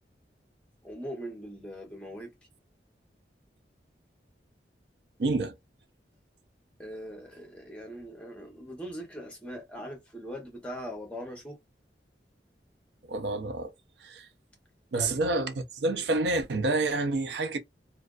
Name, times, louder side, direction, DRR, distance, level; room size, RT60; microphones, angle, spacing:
voice 1, 0.8-2.3 6.8-11.6 15.0-15.2, equal, 5° left, 0.8 m, -41 dB
voice 2, 5.2-5.6 13.1-13.7 14.0-14.3 14.9-17.6, right 2 dB, 75° right, 0.5 m, -28 dB
2.4 x 2.3 x 2.3 m
head